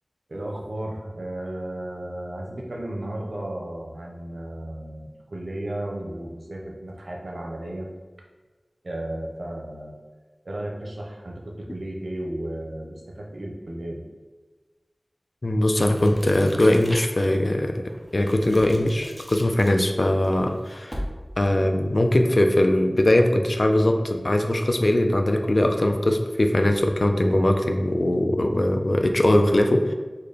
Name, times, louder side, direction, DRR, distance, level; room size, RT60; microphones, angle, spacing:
voice 1, 0.3-7.9 8.8-10.0 10.4-14.0, right 1 dB, 85° right, 0 dB, 0.6 m, -34 dB
voice 2, 15.4-17.8 18.1-21.0 21.4-29.9, left 1 dB, 60° left, 4 dB, 0.3 m, -21 dB
sound 1, 15.7-17.3 17.8-21.4, equal, 5° left, 0.5 m, -39 dB
3.9 x 2.2 x 3.3 m, 1.3 s
wide cardioid pair, 50°, 0 cm